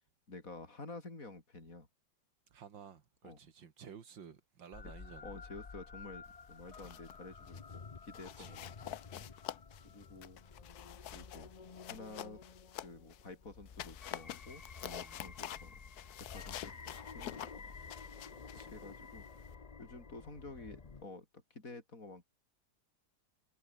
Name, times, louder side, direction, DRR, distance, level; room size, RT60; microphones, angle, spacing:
voice 1, 0.3-1.9 3.2-3.4 5.2-9.0 9.8-10.4 11.1-11.5 11.9-12.4 12.8-15.8 16.1-17.7 18.5-19.3 19.8-22.3, left 3 dB, 45° left, 5.5 m, -50 dB
voice 2, 2.5-5.4 8.4-8.6 14.8-15.3 18.5-18.7, right 7 dB, 85° right, 2.6 m, -54 dB
sound 1, 4.7-21.0, left 5 dB, 30° left, 0.8 m, -52 dB
sound 2, 6.5-7.2 7.5-7.7 8.1-13.3 13.7-19.6, left 12 dB, 65° left, 1.2 m, -48 dB
omnidirectional pair, 2.0 m